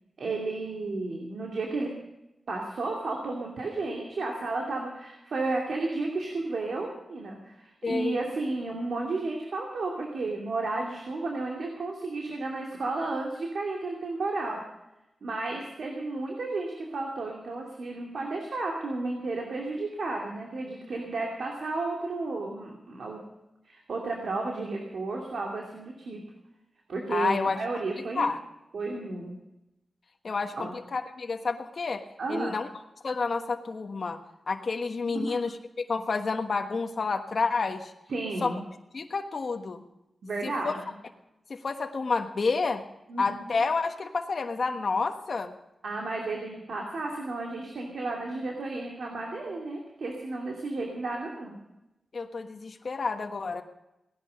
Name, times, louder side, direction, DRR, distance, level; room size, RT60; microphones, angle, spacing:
voice 1, 0.2-1.9 2.5-14.6 15.2-23.2 23.6-26.2 26.9-28.2 28.7-29.4 30.5-30.7 32.2-32.5 35.1-35.4 38.1-38.6 40.2-40.8 43.1-43.4 45.8-51.5, right 3 dB, 75° right, 0 dB, 2.7 m, -33 dB
voice 2, 7.8-8.2 27.1-27.6 28.1-28.4 30.2-32.0 32.3-32.7 33.0-34.2 34.5-37.9 38.4-38.5 38.9-39.8 40.4-40.7 41.5-42.8 43.2-45.5 52.1-53.6, left 4 dB, 60° left, 5 dB, 1.3 m, -29 dB
17.5 x 11.0 x 6.5 m, 0.91 s
cardioid pair, 70°, 0 cm